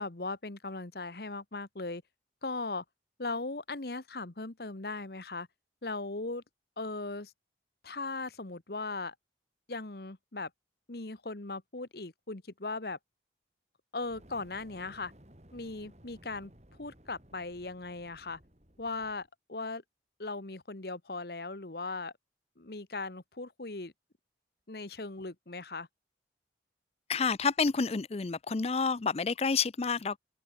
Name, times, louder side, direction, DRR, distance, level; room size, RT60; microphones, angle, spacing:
voice 1, 0.0-2.0 2.4-2.8 3.2-5.5 5.8-6.4 6.8-7.3 7.8-9.1 9.7-10.5 10.9-13.0 13.9-15.1 15.5-16.5 16.8-18.4 18.8-19.8 20.2-22.1 22.6-23.9 24.7-25.9, left 3 dB, 55° left, 1.3 m, -38 dB
Fire, 14.0-19.3, equal, 35° right, 5.4 m, -58 dB
voice 2, 27.1-30.2, left 5 dB, 35° left, 0.5 m, -29 dB
head